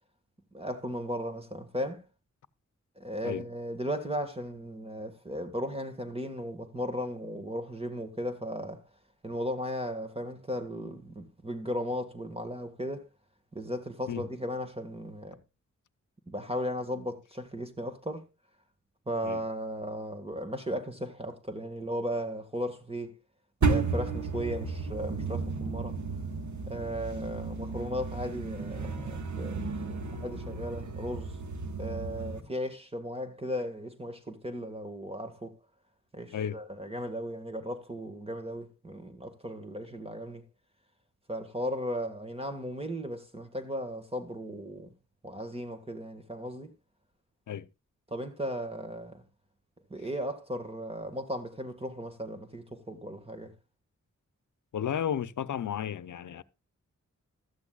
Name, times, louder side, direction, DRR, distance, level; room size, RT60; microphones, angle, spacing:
voice 1, 0.5-2.0 3.0-8.8 9.2-13.0 13.5-15.4 16.3-18.2 19.1-23.2 23.6-26.0 26.7-31.3 31.8-35.5 36.1-40.4 41.3-44.9 45.2-46.7 48.1-49.2 49.9-53.5, equal, 20° right, 1.8 m, -36 dB
sound 1, 23.6-32.4, right 4 dB, 75° right, 1.7 m, -33 dB
voice 2, 54.7-56.4, left 9 dB, 85° left, 0.7 m, -33 dB
15.0 x 13.0 x 2.4 m
wide cardioid pair, 80°, 29 cm